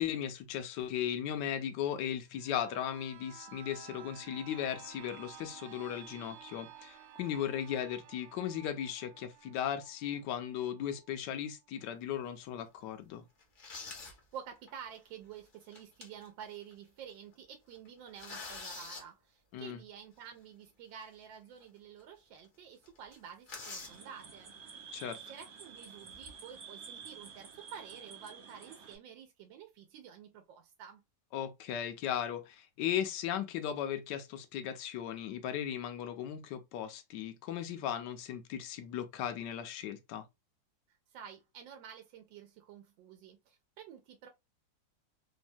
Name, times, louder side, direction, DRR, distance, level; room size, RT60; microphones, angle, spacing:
voice 1, 0.0-13.2 19.5-19.8 24.9-25.2 31.3-40.2, left 10 dB, 75° left, 1.1 m, -37 dB
sound 1, 2.3-11.9 12.3-12.4, right 9 dB, 75° right, 1.2 m, -54 dB
sound 2, 12.0-12.3 12.8-12.9 13.4-14.2 14.6-14.7 15.5-16.3 16.7-16.8 17.1-17.3 17.7-19.0 21.0-21.1 21.6-21.7 22.0-22.1 22.4-22.5 22.8-24.0 25.0-25.3 25.9-26.5, left 4 dB, 50° left, 0.6 m, -46 dB
voice 2, 14.3-24.5 25.1-31.0 40.9-44.3, right 8 dB, 90° right, 1.3 m, -50 dB
sound 3, 23.8-29.0, right 6 dB, 55° right, 0.6 m, -50 dB
3.3 x 2.1 x 2.5 m
omnidirectional pair, 2.0 m